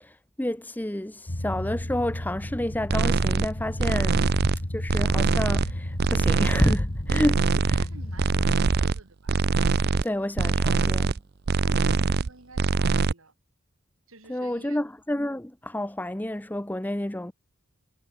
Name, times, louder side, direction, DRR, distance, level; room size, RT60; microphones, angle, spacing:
voice 1, 0.0-4.3 4.7-7.8 10.0-11.2 14.3-17.3, left 1 dB, 10° left, 0.7 m, -29 dB
sound 1, 1.3-8.6, left 1 dB, 45° left, 2.1 m, -34 dB
sound 2, 2.9-3.5 3.8-4.6 4.9-5.7 6.0-6.8 7.1-7.9 8.2-9.0 9.3-10.0 10.4-11.2 11.5-12.3 12.6-13.1, right 4 dB, 50° right, 0.5 m, -23 dB
voice 2, 7.8-9.3 11.6-13.3 14.1-14.8, right 2 dB, 80° right, 4.9 m, -49 dB
head